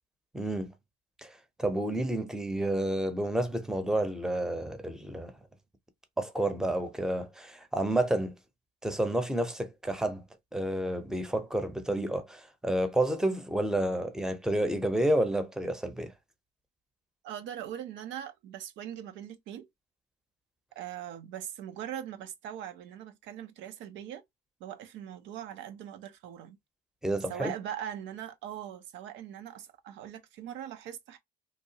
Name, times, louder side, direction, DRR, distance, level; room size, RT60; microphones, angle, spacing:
voice 1, 0.3-0.7 1.2-1.3 1.6-5.3 6.2-8.3 8.8-10.2 10.5-16.1 27.0-27.5, right 1 dB, 5° right, 0.7 m, -30 dB
voice 2, 17.2-19.7 20.8-24.2 24.6-26.6 27.3-31.2, right 10 dB, 70° right, 0.5 m, -41 dB
2.8 x 2.2 x 2.8 m
supercardioid pair, 70°, 20 cm